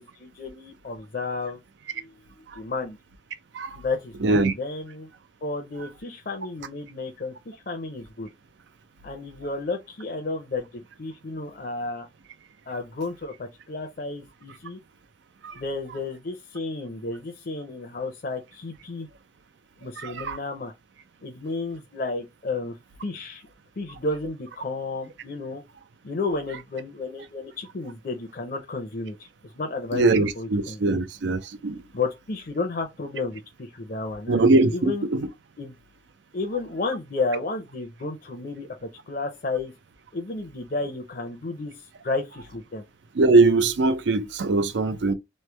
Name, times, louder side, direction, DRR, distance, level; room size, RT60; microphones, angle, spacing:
voice 1, 0.0-1.6 1.9-3.0 3.8-5.1 5.4-8.3 9.0-12.1 12.7-14.8 15.6-19.1 19.8-20.7 21.2-22.8 23.0-23.4 23.8-25.6 26.0-29.2 29.6-31.0 31.9-35.1 35.6-35.8 36.3-39.7 40.1-41.7 42.0-42.8, left 3 dB, 50° left, 0.6 m, -32 dB
voice 2, 4.2-4.5 15.4-15.6 20.0-20.4 29.9-31.8 34.3-35.3 43.1-45.1, right 3 dB, 85° right, 0.5 m, -21 dB
3.1 x 2.1 x 3.2 m
head